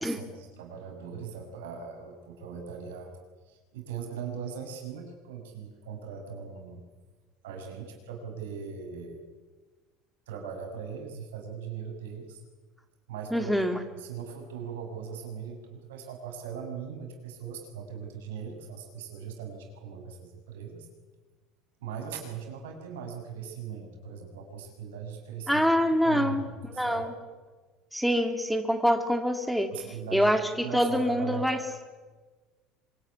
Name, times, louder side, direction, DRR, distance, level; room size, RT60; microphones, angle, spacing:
voice 1, 0.0-3.1 3.5-6.8 7.4-9.2 10.3-12.4 13.1-13.5 14.0-20.9 21.8-25.7 26.0-27.1 29.7-31.5, right 7 dB, 90° right, 2 dB, 6.9 m, -40 dB
voice 2, 13.3-13.8 25.5-26.5 26.8-27.1 27.9-29.7 30.1-31.6, equal, ahead, 7 dB, 2.7 m, -25 dB
24.5 x 22.5 x 9.9 m, 1.3 s
supercardioid pair, 95°, 0 cm